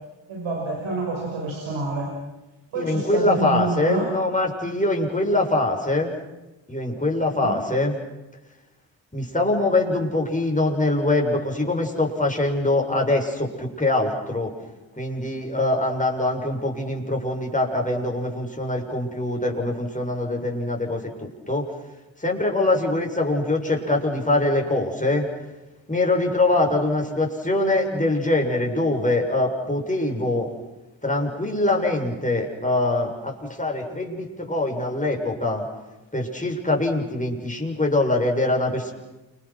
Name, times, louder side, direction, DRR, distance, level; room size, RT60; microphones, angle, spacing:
voice 1, 0.3-2.1 2.7-4.0 7.3-7.6, right 3 dB, 75° right, -1 dB, 6.3 m, -27 dB
voice 2, 2.7-6.1 6.7-7.9 9.1-14.5 15.0-21.6 22.2-25.3 25.9-30.5 31.0-35.6 36.1-38.9, left 2 dB, 15° left, 1 dB, 7.6 m, -23 dB
29.5 x 26.5 x 6.3 m, 1.1 s
hypercardioid pair, 40°, 47 cm